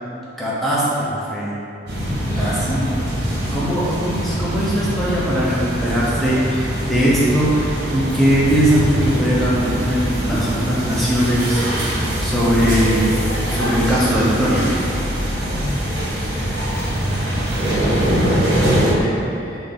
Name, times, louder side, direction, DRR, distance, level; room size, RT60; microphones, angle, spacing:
voice 1, 0.4-1.6 2.2-2.9 3.5-11.6 12.2-13.1 13.5-14.7, equal, ahead, -8 dB, 0.6 m, -20 dB
sound 1, 1.9-18.9, equal, 65° right, 1.1 m, -23 dB
voice 2, 2.2-2.7 3.7-3.9 15.5-16.9 17.5-19.6, equal, 30° left, -11 dB, 0.9 m, -32 dB
3.7 x 2.8 x 3.6 m, 2.9 s
head